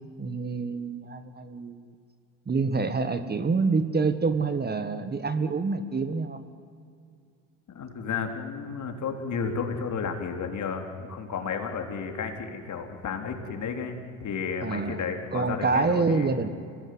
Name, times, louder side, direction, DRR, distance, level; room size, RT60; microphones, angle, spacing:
voice 1, 0.2-1.9 2.5-6.4 14.6-15.0 15.3-16.5, right 4 dB, 25° right, 11 dB, 1.6 m, -27 dB
voice 2, 7.7-16.3, left 5 dB, 45° left, 4 dB, 4.1 m, -32 dB
26.0 x 19.5 x 9.7 m, 2.3 s
hypercardioid pair, 80°, 40 cm